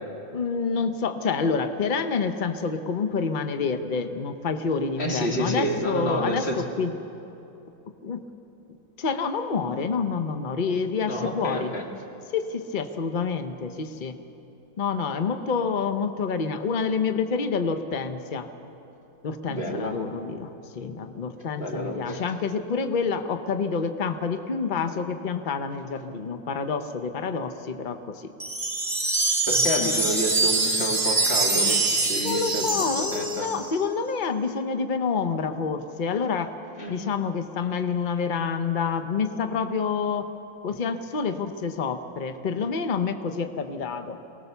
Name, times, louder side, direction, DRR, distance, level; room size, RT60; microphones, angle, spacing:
voice 1, 0.3-6.9 8.0-8.3 9.0-11.7 12.3-14.2 14.8-18.5 19.2-28.3 32.1-36.5 36.9-40.3 40.6-44.2, left 5 dB, 85° left, 8 dB, 0.4 m, -28 dB
voice 2, 5.0-6.6 11.0-11.8 19.5-19.9 21.6-22.2 29.5-32.7 33.0-33.5 36.8-37.0, equal, 35° left, 1 dB, 2.1 m, -29 dB
sound 1, 28.4-33.8, right 2 dB, 15° right, 0.7 m, -24 dB
23.0 x 18.5 x 6.9 m, 2.9 s
omnidirectional pair, 2.1 m